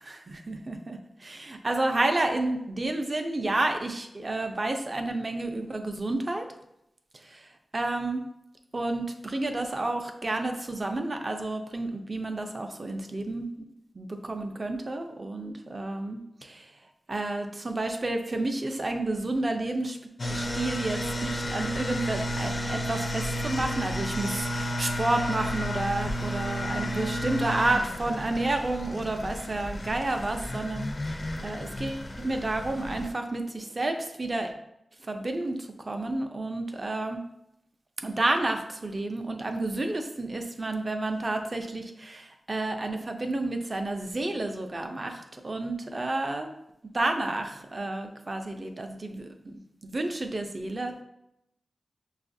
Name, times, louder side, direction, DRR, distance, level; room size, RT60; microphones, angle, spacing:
voice 1, 0.0-6.5 7.3-7.4 7.7-8.2 8.7-13.7 13.9-16.7 17.1-20.0 20.3-34.5 35.1-37.2 38.0-46.5 46.9-49.3 49.8-51.0, right 2 dB, 35° right, 5 dB, 0.4 m, -30 dB
sound 1, 20.2-33.1, equal, 40° left, 0.4 m, -32 dB
6.4 x 2.3 x 2.6 m, 0.81 s
wide cardioid pair, 125°, 0 cm